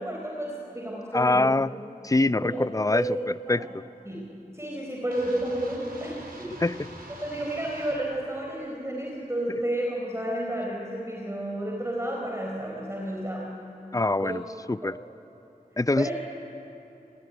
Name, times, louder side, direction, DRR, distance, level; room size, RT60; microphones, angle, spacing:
voice 1, 0.0-1.5 2.4-2.6 2.9-3.1 3.5-3.7 4.1-4.2 4.5-6.5 7.2-13.4 14.2-14.3 14.8-14.9 16.0-16.1, right 1 dB, 20° right, -2 dB, 4.2 m, -31 dB
voice 2, 1.1-1.7 2.0-3.0 3.5-3.8 6.6-6.8 13.9-14.4 14.7-15.0 15.8-16.1, left 2 dB, 20° left, 16 dB, 0.5 m, -24 dB
sound 1, 5.1-8.0, right 1 dB, 90° right, 4.4 m, -44 dB
26.0 x 19.5 x 9.9 m, 2.9 s
wide cardioid pair, 45°, 15 cm